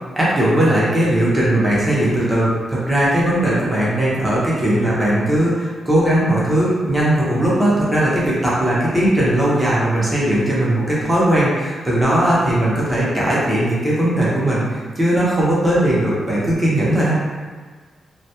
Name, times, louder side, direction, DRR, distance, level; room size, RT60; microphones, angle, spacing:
voice 1, 0.2-17.1, right 1 dB, 15° right, -7 dB, 0.7 m, -18 dB
2.2 x 2.1 x 2.8 m, 1.5 s
cardioid pair, 100°, 0 cm